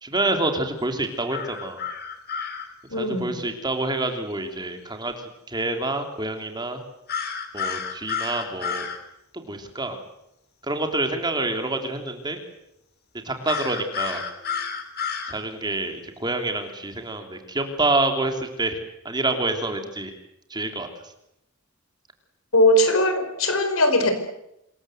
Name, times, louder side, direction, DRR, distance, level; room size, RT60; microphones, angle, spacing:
voice 1, 0.0-1.8 3.0-5.1 5.5-6.8 7.5-8.9 9.3-10.0 10.6-12.4 13.2-14.2 15.3-18.8 19.0-20.1 20.5-20.9, right 2 dB, 20° right, 5 dB, 3.3 m, -27 dB
sound 1, 1.3-2.7 7.1-9.0 13.5-15.4, left 6 dB, 50° left, 3.3 m, -30 dB
voice 2, 2.9-3.4 22.5-24.1, left 1 dB, 75° left, 7 dB, 5.0 m, -20 dB
27.0 x 21.5 x 8.0 m, 0.83 s
head